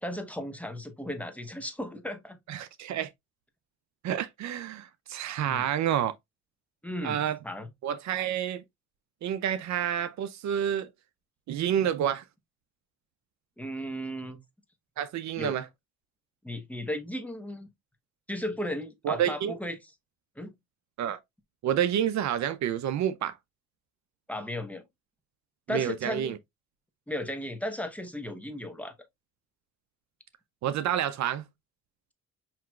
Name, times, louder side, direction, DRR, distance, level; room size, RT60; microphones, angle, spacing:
voice 1, 0.0-2.4 5.5-5.7 6.8-7.7 13.6-14.4 15.4-15.5 16.4-17.7 18.3-19.8 20.4-20.5 24.3-24.8 25.7-26.3 27.1-28.9, left 1 dB, 5° left, 1.0 m, -35 dB
voice 2, 2.5-3.1 4.0-6.1 7.0-7.4 7.8-8.6 9.2-10.9 11.5-12.2 15.0-15.7 19.0-19.6 21.0-21.2 21.6-23.4 25.7-26.4 30.6-31.4, right 10 dB, 65° right, 0.5 m, -29 dB
5.7 x 3.0 x 2.4 m
cardioid pair, 90°, 30 cm